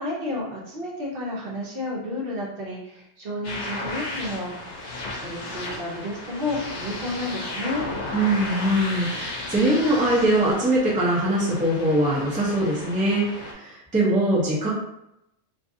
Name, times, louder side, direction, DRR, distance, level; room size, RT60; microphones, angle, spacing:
voice 1, 0.0-4.7 5.2-7.9, left 1 dB, 60° right, -4 dB, 0.8 m, -31 dB
sound 1, 3.4-13.5, left 2 dB, 80° left, 0.9 m, -34 dB
voice 2, 8.1-14.7, right 1 dB, 10° right, -6 dB, 0.5 m, -22 dB
2.6 x 2.5 x 2.5 m, 0.86 s
omnidirectional pair, 1.2 m